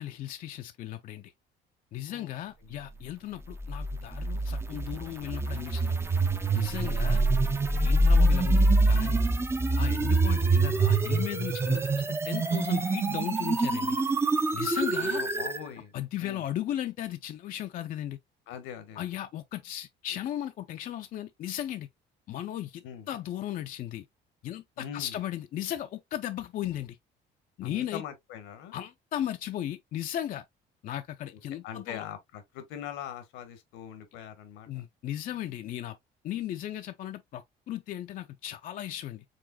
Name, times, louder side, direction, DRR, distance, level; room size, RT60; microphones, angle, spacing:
voice 1, 0.0-1.3 1.9-6.0 6.5-7.2 7.8-9.3 9.8-14.0 14.5-15.2 15.9-18.2 19.0-21.9 22.3-24.1 24.4-27.0 27.6-28.0 28.7-30.5 30.8-32.0 34.7-36.0 36.2-39.2, left 12 dB, 45° left, 0.4 m, -36 dB
sound 1, 3.5-15.6, right 2 dB, 15° right, 0.4 m, -25 dB
voice 2, 14.9-15.9 16.2-16.5 18.5-19.1 22.8-23.1 24.8-25.2 27.6-28.7 31.6-34.8, left 9 dB, 90° left, 1.2 m, -42 dB
4.9 x 3.5 x 2.2 m
cardioid pair, 135°, 19 cm